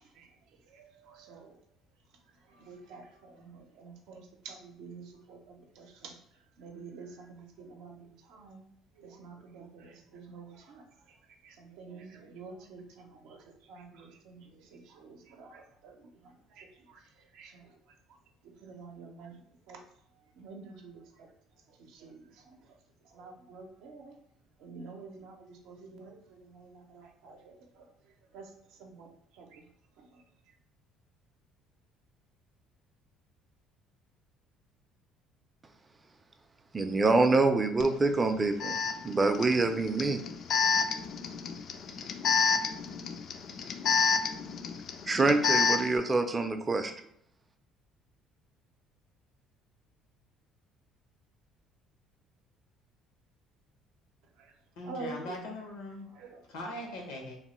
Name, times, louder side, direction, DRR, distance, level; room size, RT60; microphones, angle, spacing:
voice 1, 0.0-1.6 2.2-8.6 8.9-18.2 18.4-19.8 20.1-21.3 21.7-24.2 24.6-29.7 30.0-30.5 54.4-54.6 54.8-55.5 56.1-56.4, right 4 dB, 75° right, 3 dB, 0.6 m, -49 dB
voice 2, 36.7-38.8 39.0-40.2 45.1-46.9, right 3 dB, 25° right, 7 dB, 0.4 m, -26 dB
Alarm, 37.8-37.9 38.6-46.0, left 5 dB, 55° left, 0.3 m, -29 dB
voice 3, 54.8-56.1 56.5-57.4, left 1 dB, 85° left, 1 dB, 0.7 m, -40 dB
3.0 x 2.1 x 3.0 m, 0.67 s
supercardioid pair, 75°, 0 cm